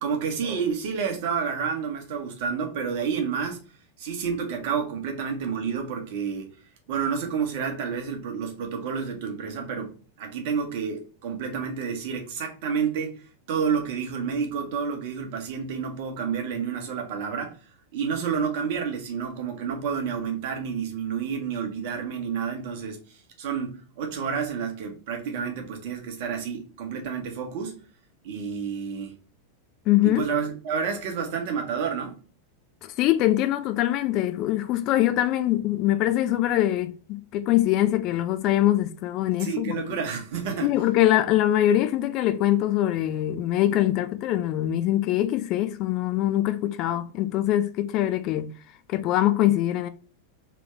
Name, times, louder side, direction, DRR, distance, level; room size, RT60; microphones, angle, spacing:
voice 1, 0.0-3.6 4.0-6.5 6.9-13.2 13.5-17.5 17.9-23.0 23.4-27.8 28.2-29.2 30.0-32.1 39.4-40.7, right 6 dB, 50° right, 1.2 m, -29 dB
voice 2, 29.9-30.3 32.8-39.8 40.6-48.5 48.9-49.9, left 13 dB, 40° left, 0.4 m, -23 dB
3.4 x 3.3 x 3.2 m
figure-of-eight pair, 90°, 0 cm